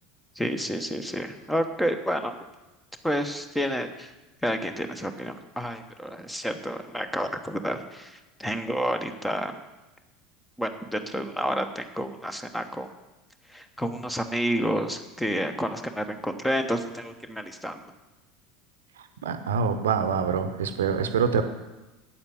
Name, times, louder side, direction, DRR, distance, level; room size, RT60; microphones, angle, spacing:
voice 1, 0.4-2.3 3.0-4.1 4.4-9.6 10.6-12.9 13.5-17.8, equal, 5° left, 8 dB, 1.1 m, -30 dB
voice 2, 19.0-21.4, right 6 dB, 70° right, 9 dB, 0.9 m, -25 dB
8.7 x 8.4 x 7.7 m, 1.1 s
figure-of-eight pair, 75°, 0 cm